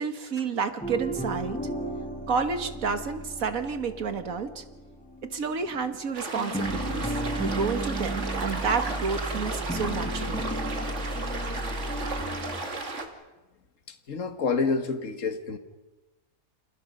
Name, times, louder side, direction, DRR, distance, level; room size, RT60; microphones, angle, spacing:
voice 1, 0.0-1.6 2.3-4.6 5.2-10.5, right 5 dB, 80° right, 8 dB, 2.0 m, -30 dB
sound 1, 0.8-6.0 6.3-12.6, right 1 dB, 5° left, 5.3 m, -34 dB
sound 2, 6.2-13.1, right 3 dB, 60° right, 2.6 m, -34 dB
voice 2, 13.9-15.6, left 4 dB, 65° left, 7 dB, 2.0 m, -28 dB
29.5 x 28.5 x 5.4 m, 1.1 s
omnidirectional pair, 1.5 m